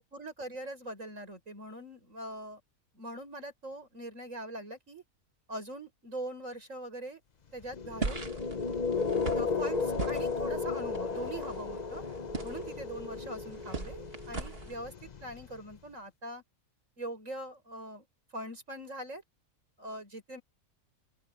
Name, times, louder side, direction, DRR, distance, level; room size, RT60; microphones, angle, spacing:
voice 1, 0.0-2.6 2.9-5.0 5.5-7.2 7.5-8.2 9.3-12.0 12.4-16.4 17.0-18.1 18.3-19.2 19.8-20.4, right 1 dB, 65° right, 6.8 m, -42 dB
sound 1, 7.6-15.7, left 4 dB, 35° left, 0.9 m, -34 dB
sound 2, 8.0-14.8, right 3 dB, 45° right, 2.2 m, -40 dB
open air
omnidirectional pair, 1.5 m